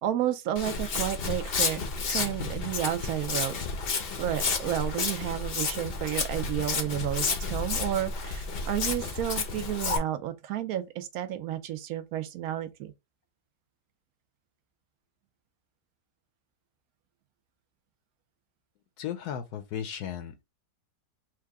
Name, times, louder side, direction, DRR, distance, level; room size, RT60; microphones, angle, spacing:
voice 1, 0.0-1.8 2.1-3.6 4.2-12.9, right 11 dB, 70° right, 0.9 m, -31 dB
Walk footsteps, 0.6-10.0, left 4 dB, 55° left, 0.7 m, -31 dB
voice 2, 19.0-20.4, left 9 dB, 75° left, 1.1 m, -35 dB
4.7 x 2.1 x 3.4 m
omnidirectional pair, 1.9 m